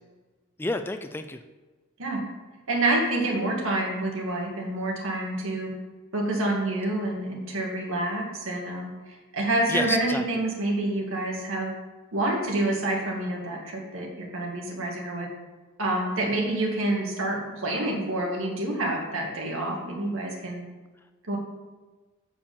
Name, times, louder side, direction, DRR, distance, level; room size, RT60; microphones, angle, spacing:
voice 1, 0.6-1.4 9.7-10.2, left 2 dB, 10° left, 8 dB, 0.3 m, -30 dB
voice 2, 2.7-5.7 6.1-11.8 12.1-15.3 15.8-20.6 21.3-21.4, right 1 dB, 65° right, -1 dB, 1.9 m, -28 dB
7.1 x 4.9 x 6.9 m, 1.3 s
head